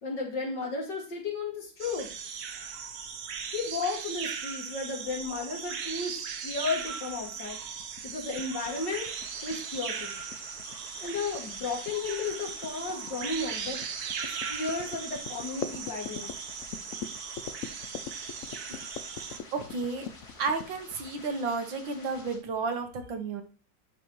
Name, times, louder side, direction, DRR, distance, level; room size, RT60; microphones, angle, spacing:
voice 1, 0.0-2.1 3.5-6.2 6.4-7.6 8.0-9.1 9.4-10.1 11.0-13.8 14.2-16.3, left 4 dB, 65° left, 0 dB, 2.7 m, -34 dB
sound 1, 1.8-19.4, right 6 dB, 60° right, 1.2 m, -38 dB
sound 2, 7.8-21.5, left 8 dB, 85° left, 0.6 m, -43 dB
sound 3, 8.5-22.4, left 2 dB, 50° left, 2.7 m, -51 dB
voice 2, 19.1-20.1 20.4-23.4, right 4 dB, 80° right, 6 dB, 1.8 m, -32 dB
11.0 x 4.9 x 3.0 m, 0.34 s
omnidirectional pair, 2.0 m